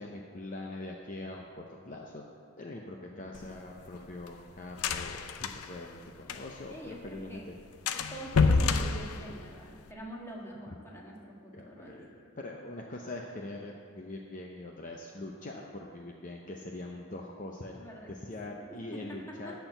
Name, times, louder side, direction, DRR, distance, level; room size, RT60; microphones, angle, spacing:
voice 1, 0.0-2.2 2.6-7.4 11.5-17.8 18.1-19.5, left 2 dB, 35° left, 0 dB, 0.6 m, -43 dB
sound 1, 3.3-6.8 7.0-7.1 7.4-7.6 7.9-9.9, left 4 dB, 90° left, 0.6 m, -29 dB
voice 2, 6.7-7.5 8.1-12.1 17.8-18.1 18.5-19.5, right 1 dB, 10° left, -3 dB, 1.5 m, -45 dB
13.0 x 4.5 x 8.0 m, 2.2 s
head